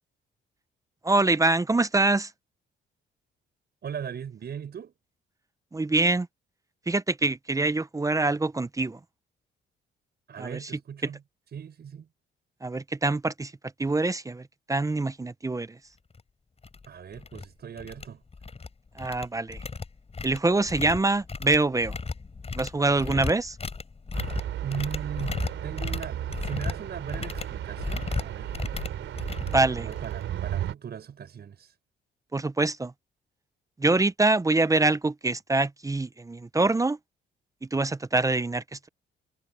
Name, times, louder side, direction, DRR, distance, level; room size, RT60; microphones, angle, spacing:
voice 1, 1.0-2.3 5.7-6.3 6.9-9.0 10.4-10.6 12.6-13.5 13.8-14.4 14.7-15.7 19.0-19.6 20.2-21.9 22.5-23.5 29.5-29.9 32.3-32.9 33.8-37.0 37.7-38.9, right 2 dB, 15° right, 0.8 m, -25 dB
voice 2, 3.8-4.9 10.3-11.2 11.5-12.1 16.9-18.2 22.9-23.3 24.6-28.5 29.7-31.7, right 8 dB, 55° right, 6.7 m, -38 dB
sound 1, 16.1-16.2 16.6-16.9 17.1-17.5 17.8-18.7 19.0-30.2, left 4 dB, 30° left, 6.1 m, -35 dB
sound 2, 24.1-30.7, right 11 dB, 75° right, 4.2 m, -34 dB
cardioid pair, 90°, 20 cm